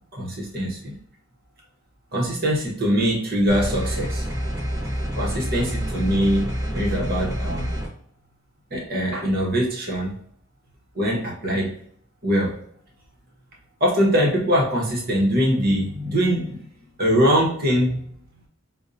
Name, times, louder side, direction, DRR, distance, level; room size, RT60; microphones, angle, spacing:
voice 1, 0.1-1.0 2.1-4.3 5.1-7.7 8.7-10.2 10.9-11.7 12.2-12.5 13.8-16.6 17.0-18.0, equal, 50° right, -1 dB, 0.9 m, -22 dB
sound 1, 3.5-7.9, equal, 15° right, 0.8 m, -27 dB
5.1 x 2.1 x 2.6 m, 0.64 s
head